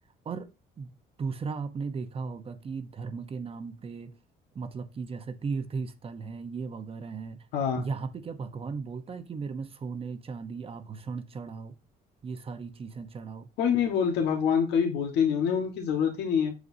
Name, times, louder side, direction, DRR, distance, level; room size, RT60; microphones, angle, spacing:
voice 1, 1.2-4.1 4.5-7.4 7.8-11.8 12.2-13.5, right 5 dB, 35° right, 1.0 m, -36 dB
voice 2, 7.5-7.8 13.6-16.5, left 7 dB, 80° left, 1.6 m, -26 dB
8.0 x 6.4 x 2.7 m
cardioid pair, 110°, 17 cm